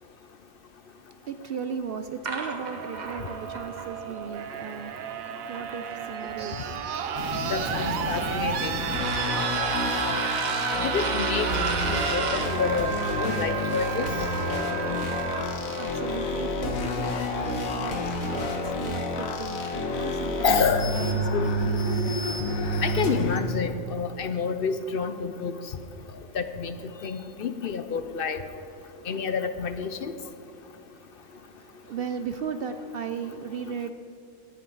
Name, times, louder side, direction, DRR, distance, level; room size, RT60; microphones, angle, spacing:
voice 1, 1.3-4.9 5.5-6.8 15.8-20.5 20.8-22.1 31.8-33.9, right 6 dB, 60° right, 9 dB, 0.6 m, -36 dB
sound 1, 2.2-6.3 6.6-12.6, right 3 dB, 35° right, 1.0 m, -36 dB
sound 2, 2.6-16.6 17.8-17.9, right 8 dB, 85° right, 1.2 m, -32 dB
sound 3, 7.2-23.4, left 1 dB, 80° left, 1.6 m, -29 dB
voice 2, 7.5-8.7 9.9-10.2 10.8-11.5 11.9-14.1 20.4-20.9 21.3-21.5 22.8-25.5 26.3-26.7 27.0-28.4 29.1-30.1, left 5 dB, 55° left, 10 dB, 0.6 m, -28 dB
17.5 x 10.5 x 3.9 m, 2.8 s
omnidirectional pair, 1.4 m